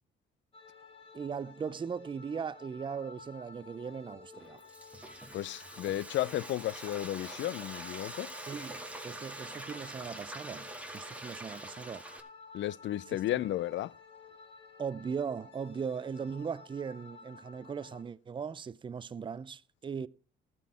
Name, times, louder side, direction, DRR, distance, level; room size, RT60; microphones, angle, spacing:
sound 1, 0.5-18.0, left 5 dB, 30° left, 3.7 m, -53 dB
voice 1, 1.1-4.6 8.5-10.7 10.9-12.0 13.1-13.2 14.8-20.1, right 6 dB, 25° right, 0.4 m, -38 dB
Frying (food), 4.3-12.2, right 1 dB, 5° right, 2.3 m, -45 dB
voice 2, 5.3-8.3 12.5-13.9, left 14 dB, 70° left, 0.4 m, -33 dB
13.0 x 6.1 x 6.2 m
cardioid pair, 90°, 20 cm